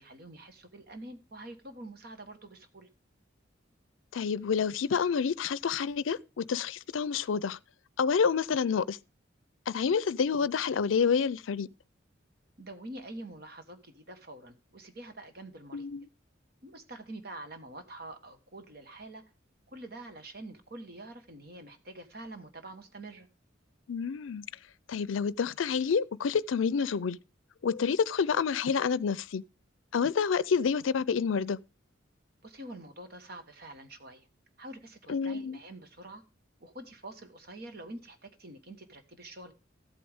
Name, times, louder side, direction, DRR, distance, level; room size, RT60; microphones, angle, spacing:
voice 1, 0.0-2.9 12.6-15.9 16.6-19.2 19.7-23.3 32.4-34.3 34.6-36.2 36.6-39.5, right 1 dB, 50° right, 1.4 m, -46 dB
voice 2, 4.1-7.6 8.0-9.0 9.7-11.7 15.7-16.1 23.9-24.4 24.9-27.2 27.6-29.4 29.9-31.6 35.1-35.6, left 6 dB, 85° left, 0.5 m, -28 dB
14.0 x 8.6 x 3.5 m
head